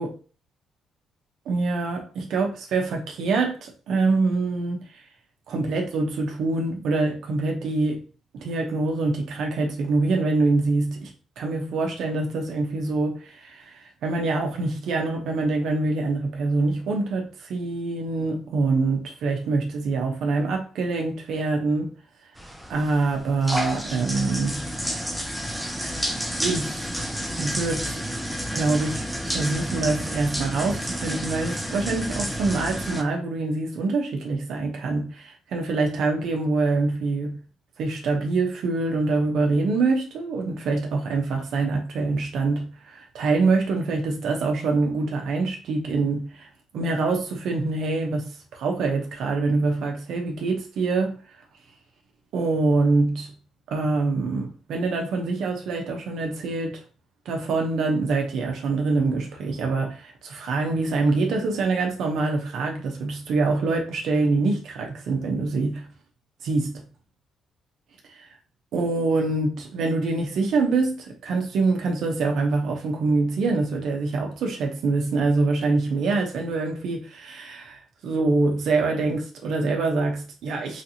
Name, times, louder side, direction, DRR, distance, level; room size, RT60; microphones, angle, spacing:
voice 1, 1.5-4.8 5.5-8.0 8.3-11.1 11.4-21.9 22.7-24.6 25.5-25.7 26.4-26.9 27.4-28.0 28.5-37.4 37.8-46.5 46.7-51.2 52.3-53.3 53.7-56.8 57.3-65.9 66.4-66.8 68.2-68.3 68.7-80.8, right 3 dB, 75° right, 0.6 m, -25 dB
sound 1, 22.4-33.0, equal, ahead, 0.5 m, -30 dB
3.2 x 2.6 x 2.8 m
cardioid pair, 90°, 0 cm